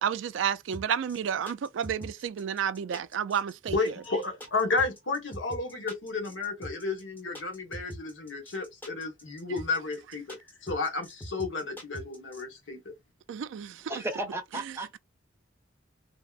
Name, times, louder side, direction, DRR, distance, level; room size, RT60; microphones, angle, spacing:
voice 1, 0.0-3.9 13.3-13.9, right 8 dB, 75° right, 0.3 m, -31 dB
sound 1, 0.7-12.4, equal, 10° left, 0.9 m, -43 dB
voice 2, 3.7-10.4 10.6-12.8, left 3 dB, 80° left, 1.1 m, -32 dB
voice 3, 13.9-15.0, right 2 dB, 15° right, 0.5 m, -34 dB
3.5 x 2.0 x 2.3 m
head